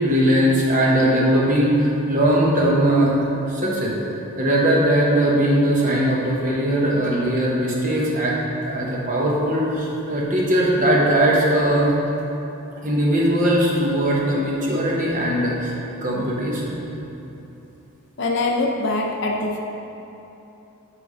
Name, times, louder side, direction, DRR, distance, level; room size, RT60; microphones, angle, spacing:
voice 1, 0.0-3.2 3.5-3.9 4.4-8.4 8.6-11.9 12.8-15.7 16.0-16.8, right 1 dB, 35° right, -4 dB, 1.0 m, -19 dB
voice 2, 18.2-19.6, left 2 dB, 55° left, 0 dB, 0.5 m, -23 dB
8.2 x 3.4 x 5.4 m, 3.0 s
head